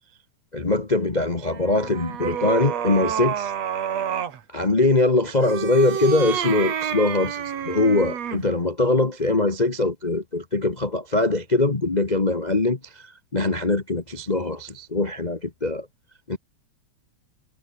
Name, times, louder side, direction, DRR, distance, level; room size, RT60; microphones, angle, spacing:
voice 1, 0.5-3.5 4.5-15.9 16.3-16.4, left 2 dB, 70° left, 0.4 m, -22 dB
sound 1, 1.4-4.4 5.3-8.5, right 8 dB, 65° right, 3.0 m, -29 dB
omnidirectional pair, 3.3 m